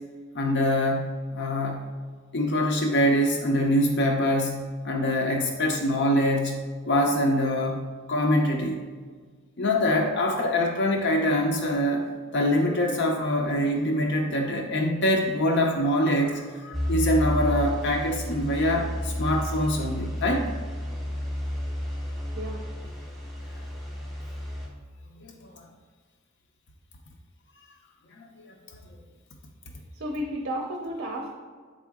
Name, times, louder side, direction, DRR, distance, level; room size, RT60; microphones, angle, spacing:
voice 1, 0.3-1.9 2.3-8.8 9.6-12.0 12.3-20.4 25.2-25.3 28.2-28.3, left 1 dB, 55° left, 2 dB, 0.6 m, -24 dB
sound 1, 16.7-24.7, equal, ahead, 1.1 m, -31 dB
voice 2, 29.9-31.3, equal, 55° right, 1 dB, 0.6 m, -32 dB
7.3 x 4.5 x 3.5 m, 1.6 s
head